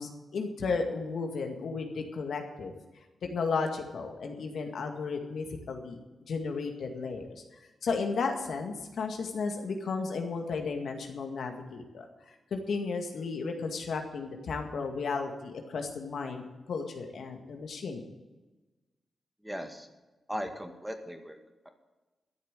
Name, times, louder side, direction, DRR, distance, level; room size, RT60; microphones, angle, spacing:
voice 1, 0.0-2.7 3.2-6.0 6.3-7.4 7.8-12.1 12.5-18.0, left 4 dB, 80° left, 4 dB, 2.0 m, -34 dB
voice 2, 19.4-19.9 20.3-21.4, equal, 5° right, 5 dB, 1.9 m, -37 dB
13.0 x 7.2 x 9.1 m, 1.1 s
cardioid pair, 60°, 0 cm